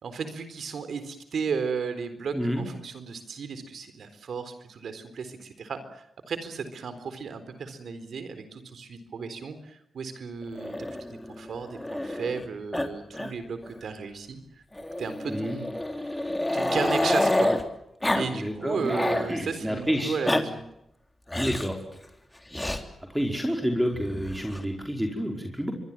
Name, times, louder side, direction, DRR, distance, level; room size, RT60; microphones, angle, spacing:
voice 1, 0.0-10.8 11.1-14.4 15.0-15.7 16.0-17.6 18.1-20.6, right 5 dB, 75° right, 11 dB, 4.0 m, -34 dB
voice 2, 2.3-2.7 15.3-15.6 18.3-19.0 19.3-20.2 21.3-21.8 22.5-22.7 23.1-25.7, equal, 5° right, 2 dB, 5.1 m, -29 dB
Growling, 10.6-12.4 12.7-12.9 13.1-13.3 13.6-13.7 14.8-17.6 18.0-18.3 18.6-19.3 20.0-20.4 21.3-21.7 22.5-22.8 23.9-24.6, left 1 dB, 15° left, 3.4 m, -28 dB
26.5 x 22.5 x 7.4 m, 0.81 s
cardioid pair, 60°, 0 cm